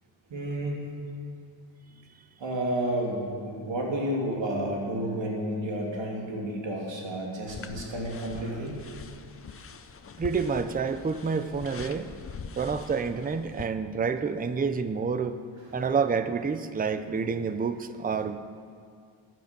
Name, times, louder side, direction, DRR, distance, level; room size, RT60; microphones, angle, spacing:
voice 1, 0.3-0.9 2.4-8.8 15.7-15.8, right 1 dB, 65° right, -1 dB, 2.8 m, -31 dB
sound 1, 7.5-13.7, left 5 dB, 30° left, 0.5 m, -43 dB
voice 2, 10.2-12.1 12.6-15.4 15.7-18.4, right 5 dB, 20° right, 11 dB, 0.4 m, -28 dB
15.0 x 9.4 x 6.8 m, 2.2 s
wide cardioid pair, 165°, 47 cm